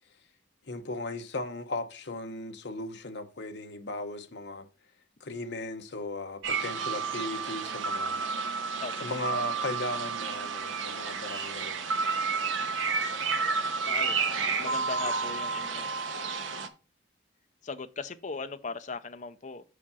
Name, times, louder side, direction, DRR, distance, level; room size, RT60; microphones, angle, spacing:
voice 1, 0.7-4.7 5.2-8.2 9.0-11.8, left 2 dB, 60° left, 0.9 m, -37 dB
sound 1, 6.4-16.7, right 5 dB, 80° right, 0.9 m, -31 dB
voice 2, 13.8-14.2 14.6-16.0 17.6-19.6, left 4 dB, 40° left, 0.5 m, -38 dB
5.7 x 5.0 x 5.5 m
head